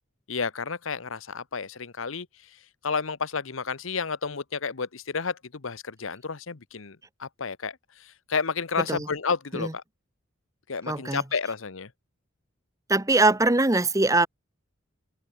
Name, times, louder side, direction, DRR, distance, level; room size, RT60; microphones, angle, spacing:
voice 1, 0.3-2.3 2.8-9.8 10.7-11.9, left 5 dB, 75° left, 1.0 m, -31 dB
voice 2, 10.9-11.2 12.9-14.3, right 2 dB, 15° right, 0.9 m, -22 dB
head